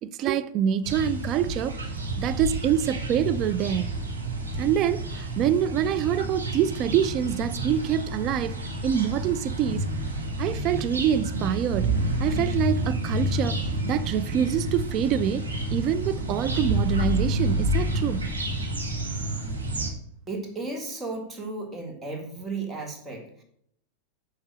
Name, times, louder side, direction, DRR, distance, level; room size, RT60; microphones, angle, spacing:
voice 1, 0.0-1.8 2.2-3.9 4.6-8.6 8.8-9.9 10.4-13.6 13.9-18.3, right 9 dB, 35° right, 0.4 m, -26 dB
sound 1, 0.8-19.9, right 1 dB, 80° right, 1.3 m, -29 dB
voice 2, 20.3-23.4, right 3 dB, 15° right, 1.8 m, -34 dB
7.1 x 4.8 x 6.2 m
figure-of-eight pair, 90°, 0 cm